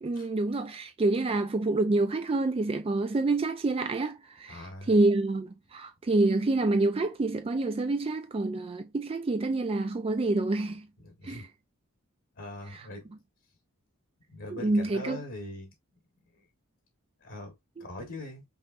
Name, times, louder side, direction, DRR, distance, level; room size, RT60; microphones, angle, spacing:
voice 1, 0.0-10.9 11.2-11.5 12.7-12.8 14.5-15.2 17.8-17.9, right 2 dB, 25° right, 0.4 m, -27 dB
voice 2, 4.5-4.9 11.0-11.5 12.4-13.1 14.3-15.7 16.3-16.4 17.2-17.5 17.8-18.4, left 1 dB, 60° left, 1.3 m, -42 dB
5.4 x 3.0 x 2.5 m
head